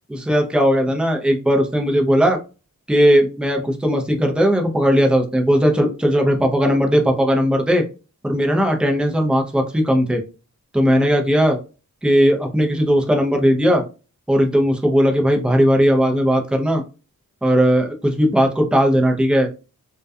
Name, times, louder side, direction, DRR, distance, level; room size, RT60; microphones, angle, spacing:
voice 1, 0.3-2.4 2.9-7.8 8.2-10.2 10.7-11.6 12.0-13.8 14.3-16.8 17.4-19.5, equal, 5° right, 3 dB, 0.5 m, -17 dB
2.3 x 2.2 x 2.6 m, 0.33 s
wide cardioid pair, 60°, 34 cm